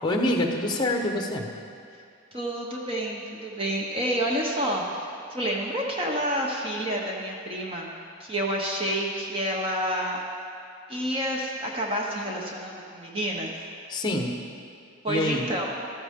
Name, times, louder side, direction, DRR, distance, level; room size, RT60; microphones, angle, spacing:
voice 1, 0.0-1.5 13.9-14.4 15.1-15.5, left 1 dB, 20° left, 2 dB, 1.1 m, -26 dB
voice 2, 2.3-7.9 8.2-10.2 10.9-13.5 15.0-15.8, equal, 25° right, -1 dB, 1.0 m, -29 dB
13.5 x 13.0 x 3.7 m, 2.4 s
head